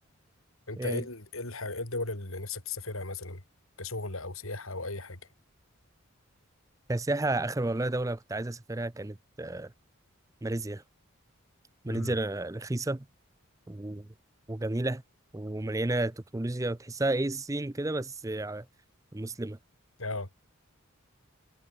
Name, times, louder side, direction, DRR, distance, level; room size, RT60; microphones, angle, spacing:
voice 1, 0.7-3.4 3.8-5.2 11.9-12.1 20.0-20.3, left 2 dB, 70° left, 4.6 m, -36 dB
voice 2, 6.9-9.7 10.4-10.8 11.8-13.0 13.7-14.1 14.5-15.0 15.3-18.6 19.1-19.6, right 2 dB, 15° right, 0.5 m, -31 dB
head